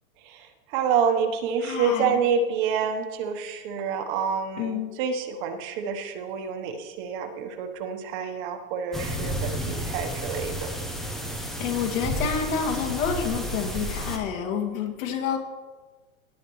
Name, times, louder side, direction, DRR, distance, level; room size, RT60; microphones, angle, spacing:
voice 1, 0.3-10.7, right 6 dB, 35° right, 7 dB, 1.0 m, -28 dB
voice 2, 1.6-2.2 4.6-4.9 11.4-15.4, left 7 dB, 65° left, 2 dB, 2.4 m, -28 dB
sound 1, 8.9-14.2, equal, ahead, 0.4 m, -31 dB
18.0 x 8.3 x 3.1 m, 1.3 s
supercardioid pair, 150°, 43 cm